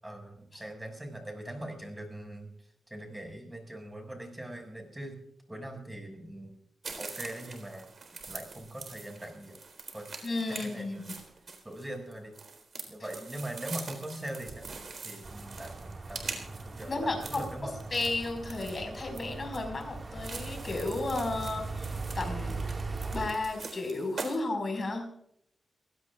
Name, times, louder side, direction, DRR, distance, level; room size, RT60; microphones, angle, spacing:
voice 1, 0.0-5.2 5.5-6.5 7.0-7.9 8.2-9.6 9.9-10.1 10.5-11.1 11.6-12.4 12.9-14.7 15.0-16.4 16.7-17.7 21.4-21.6, right 1 dB, 10° right, 3 dB, 6.3 m, -42 dB
sound 1, 6.8-24.4, right 4 dB, 55° right, 4.0 m, -44 dB
voice 2, 10.2-10.9 16.8-17.5 17.9-21.6 22.2-22.6 23.1-25.0, left 2 dB, 40° left, 3 dB, 5.4 m, -33 dB
sound 2, 15.2-23.3, right 3 dB, 35° right, 2.0 m, -39 dB
24.5 x 17.0 x 2.5 m, 0.70 s
cardioid pair, 80°, 0 cm